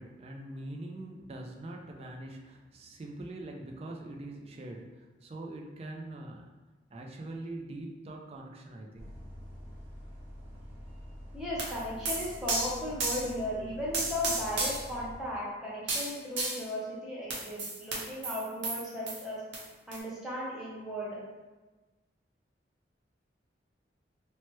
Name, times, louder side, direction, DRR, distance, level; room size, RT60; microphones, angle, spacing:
voice 1, 0.0-6.5 6.9-9.1, right 1 dB, 30° right, 1 dB, 0.3 m, -43 dB
Bus, 9.0-15.2, equal, 10° left, 1.1 m, -46 dB
voice 2, 11.3-19.4 19.9-21.2, left 1 dB, 5° right, -7 dB, 0.7 m, -36 dB
sound 1, 11.6-13.3 13.9-14.9 15.9-16.6 17.3-19.2 19.5-19.6 19.9-20.0, right 2 dB, 70° right, 0.8 m, -33 dB
3.1 x 2.1 x 3.0 m, 1.2 s
head